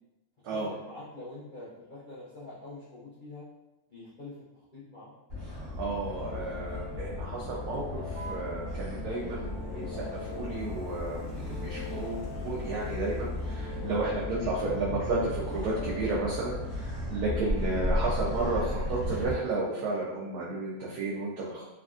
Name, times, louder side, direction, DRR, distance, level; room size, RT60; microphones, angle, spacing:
voice 1, 0.5-3.4 3.9-4.3 4.7-5.1 13.8-14.1, left 2 dB, 55° left, -9 dB, 0.5 m, -45 dB
Motor vehicle (road), 5.3-19.3, left 1 dB, 40° right, 0.8 m, -35 dB
voice 2, 5.8-21.6, right 2 dB, 75° right, -5 dB, 1.1 m, -33 dB
sound 1, 6.2-17.9, left 5 dB, 90° left, 1.1 m, -45 dB
3.2 x 2.3 x 2.4 m, 0.96 s
omnidirectional pair, 1.7 m